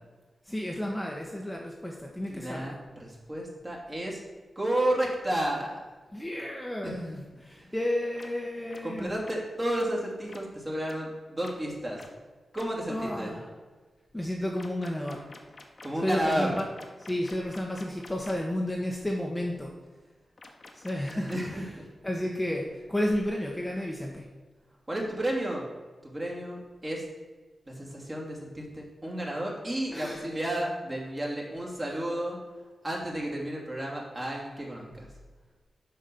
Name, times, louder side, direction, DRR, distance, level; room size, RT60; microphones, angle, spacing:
voice 1, 0.4-2.8 6.1-9.1 12.9-13.5 14.1-15.2 16.0-16.7 17.0-19.7 20.7-21.8 22.0-24.3 29.9-30.2 31.9-32.0, left 1 dB, 10° left, -1 dB, 1.1 m, -32 dB
voice 2, 2.3-4.2 4.6-5.8 6.8-7.0 8.8-12.0 12.5-13.3 15.8-16.5 21.3-21.9 24.9-25.7 26.0-27.0 27.7-32.4 32.8-35.1, right 1 dB, 25° right, -2 dB, 2.6 m, -32 dB
sound 1, 8.2-8.3 8.7-8.8 9.2-9.4 9.7-9.9 10.3-10.4 10.8-11.0 11.4-11.5 12.0-12.1 12.5-12.6 14.6-18.3 20.4-21.5, left 3 dB, 45° left, 1.2 m, -48 dB
6.5 x 5.2 x 6.8 m, 1.3 s
cardioid pair, 70°, 0 cm